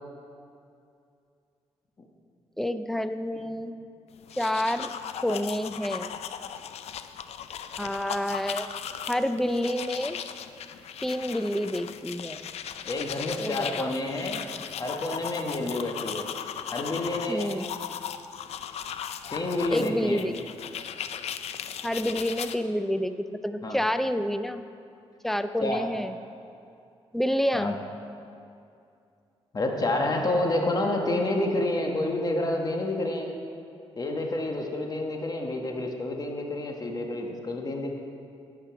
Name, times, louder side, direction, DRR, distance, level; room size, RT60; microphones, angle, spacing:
voice 1, 2.6-3.8 4.4-4.9 5.2-6.2 7.8-8.7 9.1-10.2 11.0-12.5 13.4-13.9 17.3-17.6 19.7-20.3 21.8-24.6 25.2-26.1 27.1-27.8, equal, 5° left, 10 dB, 0.5 m, -28 dB
sound 1, 4.2-22.6, left 9 dB, 75° left, 0.5 m, -37 dB
voice 2, 12.8-14.4 14.8-16.3 16.7-17.5 19.3-20.2 23.6-23.8 25.6-25.9 27.5-27.8 29.5-33.4 34.0-37.9, left 2 dB, 35° left, 2 dB, 1.4 m, -29 dB
11.0 x 8.5 x 5.8 m, 2.5 s
cardioid pair, 85°, 11 cm